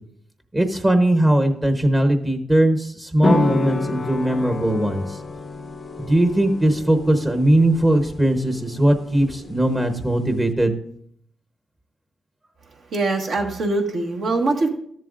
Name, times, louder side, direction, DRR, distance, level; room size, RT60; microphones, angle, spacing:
voice 1, 0.5-5.2 6.1-10.8, right 1 dB, 20° right, 6 dB, 0.9 m, -19 dB
sound 1, 3.2-10.5, left 3 dB, 40° left, 0.5 m, -29 dB
voice 2, 12.9-14.7, right 2 dB, 70° right, 1 dB, 1.5 m, -22 dB
12.5 x 7.5 x 2.5 m, 0.66 s
supercardioid pair, 65°, 0 cm